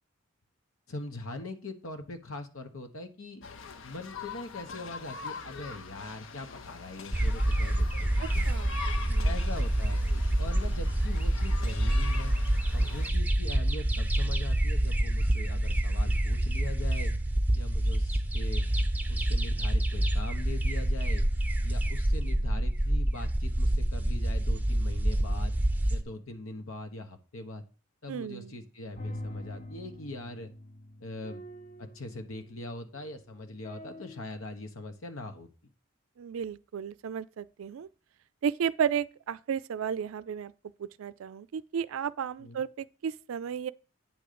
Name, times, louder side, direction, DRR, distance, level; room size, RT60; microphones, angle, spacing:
voice 1, 0.9-3.4 3.8-8.1 9.2-10.0 10.4-12.4 12.7-17.1 17.5-18.7 19.1-21.2 21.6-25.6 25.9-27.6 28.0-30.5 31.0-31.4 31.8-35.5 42.4-42.6, left 2 dB, 85° left, 1.1 m, -41 dB
sound 1, 3.4-13.1, left 5 dB, 65° left, 0.7 m, -43 dB
sound 2, 7.1-26.0, right 1 dB, 10° right, 0.6 m, -27 dB
voice 2, 8.2-9.3 28.1-28.5 36.2-37.9 38.4-40.5 40.8-43.7, right 8 dB, 75° right, 0.4 m, -33 dB
sound 3, 29.0-33.0 33.6-34.2, left 1 dB, 35° left, 0.9 m, -44 dB
8.9 x 3.8 x 6.8 m
head